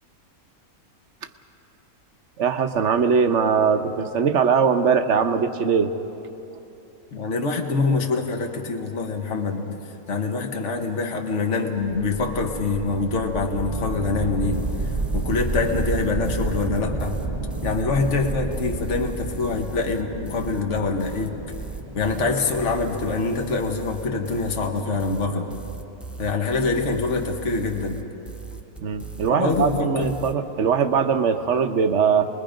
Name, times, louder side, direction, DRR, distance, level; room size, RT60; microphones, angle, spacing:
voice 1, 2.4-5.9 28.8-32.3, right 6 dB, 55° right, 7 dB, 1.2 m, -21 dB
voice 2, 7.1-9.8 10.1-17.2 17.6-21.4 21.9-25.5 26.2-28.0 29.3-30.1, left 3 dB, 50° left, 2 dB, 1.7 m, -25 dB
sound 1, 11.8-24.9, right 2 dB, 20° right, 0.9 m, -31 dB
sound 2, 14.5-30.3, right 5 dB, ahead, 0.4 m, -39 dB
28.5 x 21.5 x 5.2 m, 3.0 s
omnidirectional pair, 1.6 m